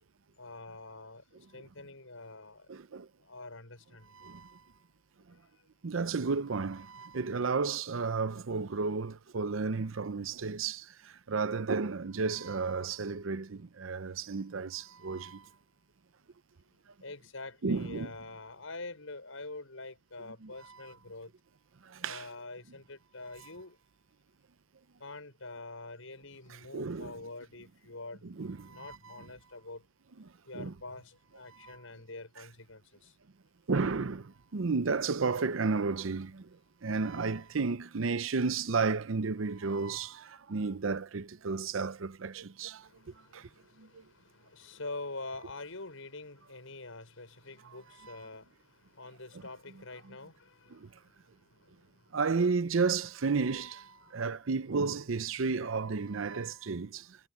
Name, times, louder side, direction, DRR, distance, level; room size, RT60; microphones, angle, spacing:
voice 1, 0.4-1.2 1.5-2.7 3.2-4.2 5.4-5.5 17.0-21.3 22.0-23.8 25.0-28.3 28.7-29.8 30.5-33.2 42.8-51.1 51.4-51.9 54.0-54.2, left 2 dB, 90° left, 6.2 m, -46 dB
voice 2, 2.7-3.1 4.1-4.6 5.8-15.5 17.6-18.1 20.4-20.5 21.8-22.2 26.5-27.1 28.2-29.1 30.5-30.7 31.6-31.8 33.7-36.5 36.8-42.9 43.3-43.5 43.8-44.0 48.0-48.2 49.3-49.4 50.7-50.9 52.1-57.2, right 4 dB, 80° right, 0.7 m, -32 dB
head